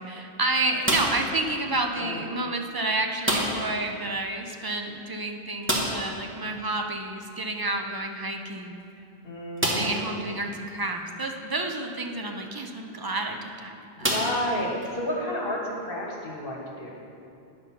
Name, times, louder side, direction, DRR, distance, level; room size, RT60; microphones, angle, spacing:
voice 1, 0.0-9.0 9.7-14.1, right 2 dB, 30° right, 3 dB, 0.4 m, -30 dB
sound 1, 0.8-1.4 3.2-3.8 4.0-4.1 4.5-4.6 5.6-6.2 7.9-8.0 8.7-8.8 9.6-10.1 10.8-10.9 12.9-13.1 14.0-14.9, right 1 dB, 10° right, 1.1 m, -27 dB
voice 2, 9.2-10.1 14.0-16.9, left 1 dB, 60° left, -2 dB, 1.5 m, -31 dB
9.3 x 5.2 x 5.8 m, 2.6 s
omnidirectional pair, 1.1 m